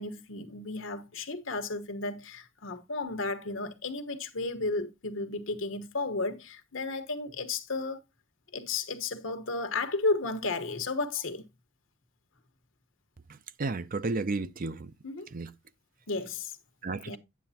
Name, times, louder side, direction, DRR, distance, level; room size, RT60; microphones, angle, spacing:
voice 1, 0.0-8.0 8.5-11.5 15.0-15.3 16.1-16.6 17.0-17.2, left 3 dB, 80° left, 1.3 m, -33 dB
voice 2, 13.6-14.9 15.3-15.5 16.8-17.2, right 3 dB, 45° right, 0.6 m, -32 dB
9.5 x 7.9 x 2.8 m
head